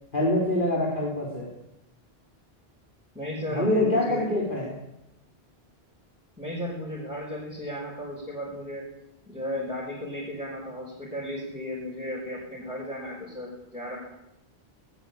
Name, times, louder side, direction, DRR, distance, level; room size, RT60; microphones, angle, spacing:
voice 1, 0.1-1.5 3.5-4.7, left 1 dB, 55° left, -2 dB, 4.6 m, -25 dB
voice 2, 3.1-4.2 6.4-8.8 9.3-14.0, equal, 5° right, -4 dB, 6.3 m, -35 dB
20.0 x 19.0 x 8.8 m, 0.86 s
omnidirectional pair, 1.0 m